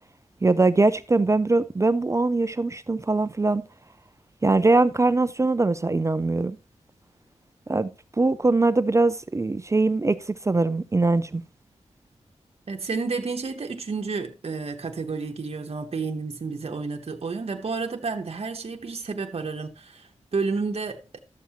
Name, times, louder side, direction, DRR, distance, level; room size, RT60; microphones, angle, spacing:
voice 1, 0.4-3.6 4.4-6.6 7.7-7.9 8.2-11.4, right 3 dB, 25° right, 0.4 m, -22 dB
voice 2, 12.7-21.2, right 4 dB, 55° right, 1.0 m, -31 dB
12.5 x 7.1 x 2.9 m
wide cardioid pair, 80°, 12 cm